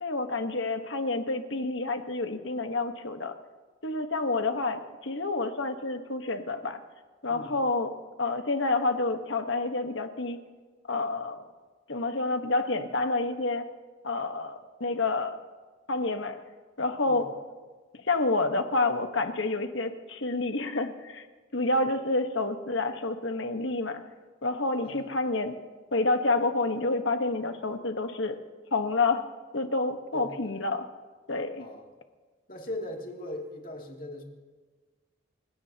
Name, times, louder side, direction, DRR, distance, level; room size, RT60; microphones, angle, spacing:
voice 1, 0.0-3.3 3.8-6.8 7.2-7.9 8.2-10.4 10.9-11.4 11.9-13.7 14.0-15.4 15.9-16.4 16.8-17.3 18.0-21.3 21.5-24.0 24.4-25.5 25.9-28.4 28.7-29.3 29.5-30.9 31.3-31.7, left 3 dB, 60° left, 6 dB, 1.3 m, -28 dB
voice 2, 30.1-30.6 31.6-31.9 32.5-34.2, left 1 dB, 40° left, 0 dB, 2.7 m, -39 dB
29.5 x 16.5 x 2.9 m, 1.4 s
head